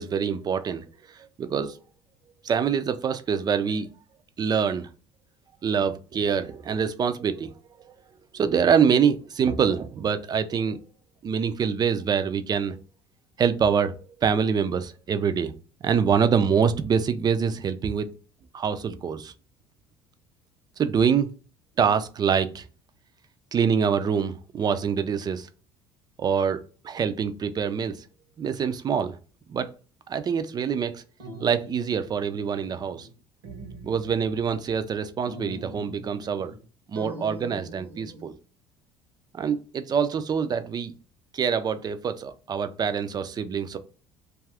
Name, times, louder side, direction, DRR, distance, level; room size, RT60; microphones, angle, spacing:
voice 1, 0.0-1.8 2.4-3.9 4.4-4.9 5.6-7.5 8.3-10.8 11.2-12.8 13.4-15.5 15.8-18.1 18.5-19.3 20.8-21.3 21.8-22.7 23.5-25.5 26.2-28.1 28.4-29.2 29.5-29.7 30.1-31.0 31.4-33.1 33.8-36.5 36.9-38.3 39.3-40.9 41.3-43.8, right 7 dB, 35° right, 0.4 m, -25 dB
sound 1, 31.2-33.1 33.4-34.9 35.3-36.6 37.0-38.3, right 1 dB, 80° right, 0.9 m, -43 dB
2.6 x 2.4 x 3.3 m
hypercardioid pair, 60°, 12 cm